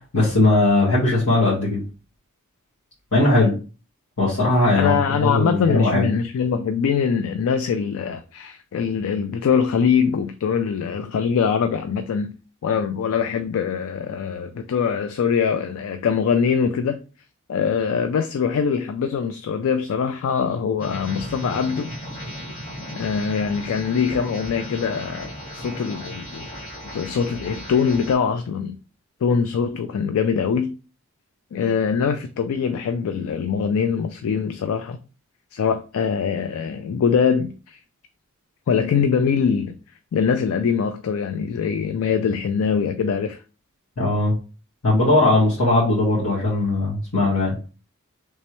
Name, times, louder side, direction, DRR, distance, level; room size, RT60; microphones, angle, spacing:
voice 1, 0.1-1.8 3.1-3.5 4.2-6.1 44.0-44.4 44.8-47.5, left 2 dB, 90° left, 1.7 m, -19 dB
voice 2, 4.8-12.4 12.6-17.0 17.5-21.9 22.9-26.5 26.9-28.8 29.2-30.7 31.5-35.0 35.5-37.8 38.7-39.8 40.1-43.4, left 6 dB, 70° left, 0.3 m, -23 dB
sound 1, 20.8-28.1, equal, 35° left, 1.4 m, -35 dB
3.4 x 3.2 x 2.9 m
head